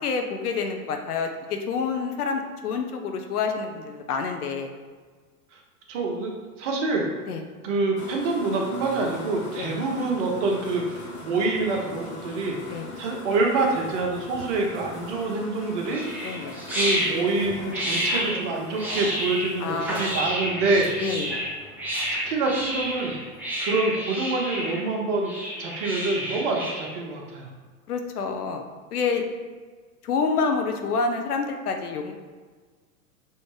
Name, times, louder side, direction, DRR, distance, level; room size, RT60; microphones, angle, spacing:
voice 1, 0.0-4.7 7.3-7.4 9.6-9.7 12.7-12.9 16.2-16.6 19.6-20.6 21.0-21.4 27.9-28.6 28.9-29.2 30.0-32.1, left 5 dB, 70° left, 5 dB, 0.8 m, -28 dB
voice 2, 5.9-6.3 6.6-7.0 7.6-16.0 16.7-20.9 22.1-23.2 23.6-27.5, right 3 dB, 50° right, 0 dB, 1.1 m, -26 dB
sound 1, 8.0-23.5, left 2 dB, 25° left, 0.9 m, -42 dB
sound 2, 15.9-26.9, equal, 5° right, 0.8 m, -30 dB
5.6 x 2.7 x 3.1 m, 1.5 s
hypercardioid pair, 105°, 47 cm